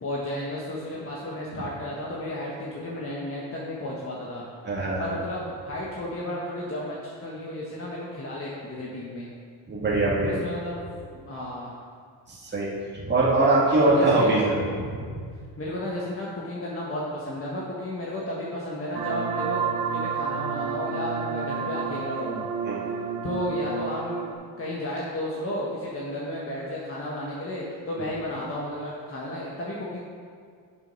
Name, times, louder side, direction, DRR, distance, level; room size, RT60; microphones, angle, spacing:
voice 1, 0.0-9.3 10.2-10.8 11.1-11.7 13.7-14.4 15.6-22.4 23.2-24.3 24.6-30.1, left 1 dB, 30° left, -5 dB, 1.4 m, -33 dB
voice 2, 4.7-5.1 9.7-10.4 12.3-12.7 12.9-14.9 22.6-22.8, right 2 dB, 25° right, -7 dB, 2.0 m, -22 dB
sound 1, 18.9-24.3, right 6 dB, 60° right, 0.9 m, -30 dB
7.4 x 6.2 x 5.4 m, 2.1 s
cardioid pair, 105°, 43 cm